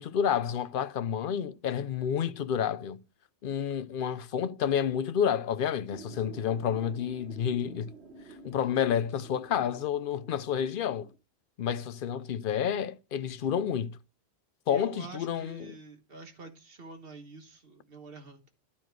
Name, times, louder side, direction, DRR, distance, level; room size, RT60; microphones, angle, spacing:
voice 1, 0.0-3.0 3.4-7.9 8.4-11.1 11.6-14.0 14.7-15.7, left 8 dB, 60° left, 0.7 m, -30 dB
sound 1, 5.9-11.2, right 3 dB, 80° right, 1.6 m, -50 dB
voice 2, 14.7-18.5, right 3 dB, 65° right, 1.6 m, -47 dB
12.0 x 4.3 x 4.6 m
omnidirectional pair, 1.1 m